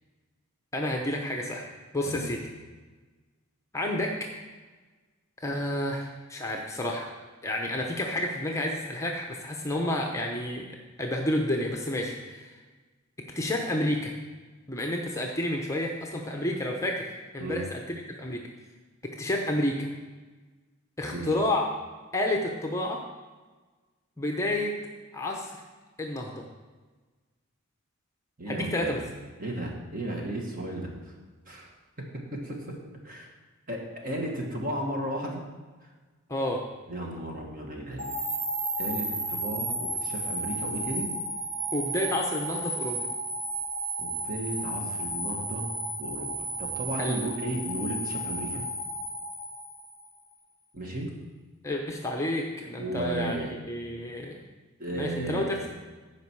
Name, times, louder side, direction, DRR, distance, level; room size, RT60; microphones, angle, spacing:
voice 1, 0.7-1.6 1.9-2.4 3.7-4.1 5.4-7.1 7.4-10.6 11.0-12.6 13.4-14.1 14.7-18.4 19.2-19.9 21.0-21.6 22.1-23.0 24.2-24.7 25.1-25.6 26.0-26.4 28.5-29.0 36.3-36.6 41.7-43.1 47.0-47.3 51.6-53.4 53.7-54.4 54.9-55.7, left 1 dB, 15° left, 1 dB, 0.8 m, -30 dB
voice 2, 28.4-29.0 29.4-31.1 31.5-31.7 32.3-32.8 33.0-33.3 33.7-35.4 36.9-38.1 38.8-41.1 44.0-45.7 46.0-46.3 46.6-48.6 50.7-51.1 52.8-53.5 54.8-55.7, right 1 dB, 40° right, 0 dB, 1.8 m, -34 dB
sound 1, 38.0-50.2, right 1 dB, 85° right, 2.2 m, -33 dB
14.5 x 5.2 x 4.7 m, 1.3 s
head